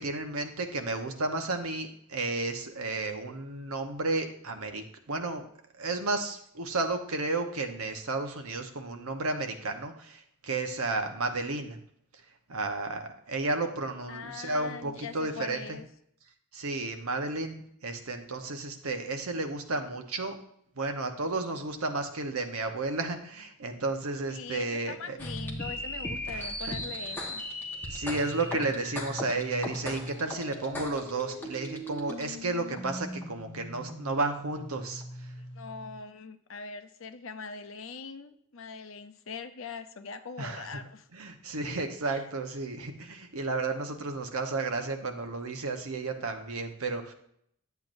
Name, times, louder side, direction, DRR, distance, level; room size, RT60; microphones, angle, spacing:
voice 1, 0.0-5.5 5.8-11.8 12.5-15.8 16.5-20.4 20.8-25.2 26.3-26.8 27.9-35.0 40.4-40.8 41.1-47.1, right 3 dB, 85° right, 5 dB, 1.1 m, -32 dB
voice 2, 14.1-15.8 24.3-27.4 35.5-41.1 42.0-42.3, left 5 dB, 65° left, 9 dB, 0.6 m, -42 dB
sound 1, 25.2-36.0, equal, 10° left, 1.2 m, -38 dB
10.5 x 8.1 x 2.6 m, 0.69 s
head